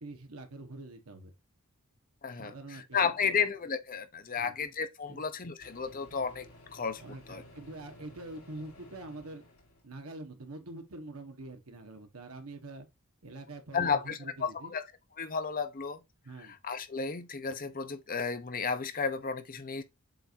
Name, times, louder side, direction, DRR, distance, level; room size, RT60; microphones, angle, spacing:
voice 1, 0.0-1.3 2.4-3.4 4.4-4.5 5.1-5.2 7.0-9.5 9.8-12.9 13.2-14.7 16.2-16.6, right 2 dB, 80° right, 1.4 m, -45 dB
voice 2, 2.2-6.5 6.7-7.0 7.3-7.4 13.7-14.8 15.2-16.0 16.4-19.8, left 5 dB, 40° left, 0.8 m, -33 dB
Microwave oven, 4.6-4.7 5.6-9.9, left 1 dB, 75° left, 4.0 m, -55 dB
7.8 x 2.7 x 4.5 m
head